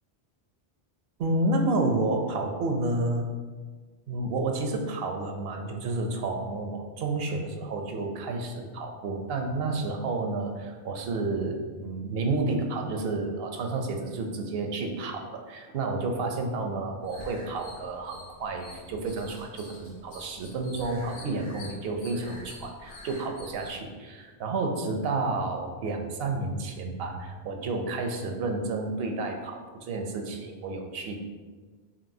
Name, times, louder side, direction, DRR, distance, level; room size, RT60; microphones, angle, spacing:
voice 1, 1.2-3.3 4.1-31.4, right 2 dB, 70° right, 4 dB, 0.8 m, -30 dB
sound 1, 17.0-23.7, left 2 dB, 45° left, 1.0 m, -47 dB
5.8 x 2.6 x 2.7 m, 1.4 s
omnidirectional pair, 1.1 m